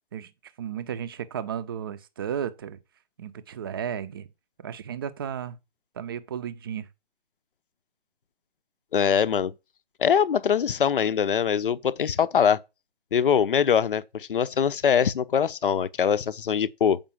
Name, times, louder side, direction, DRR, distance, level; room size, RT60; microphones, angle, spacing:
voice 1, 0.6-2.8 3.2-4.3 4.6-5.6 5.9-6.9, right 8 dB, 25° right, 0.6 m, -34 dB
voice 2, 8.9-9.5 10.0-12.6 13.1-17.0, left 7 dB, 60° left, 0.7 m, -23 dB
7.3 x 5.2 x 7.2 m
figure-of-eight pair, 145°, 31 cm